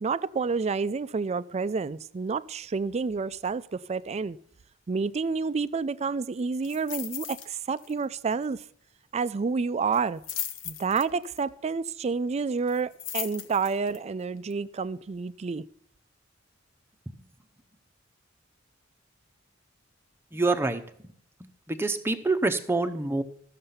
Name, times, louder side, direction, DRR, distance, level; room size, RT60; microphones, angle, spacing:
voice 1, 0.0-4.4 4.9-8.6 9.1-10.2 10.6-15.6, right 5 dB, 35° right, 0.4 m, -29 dB
sound 1, 6.6-7.5 7.8-8.0 8.3-8.4 9.9-11.4 12.7-14.0 14.5-14.6, left 9 dB, 75° left, 0.9 m, -36 dB
voice 2, 20.3-21.1 21.4-23.2, right 3 dB, 10° right, 0.7 m, -27 dB
13.5 x 6.6 x 5.6 m
head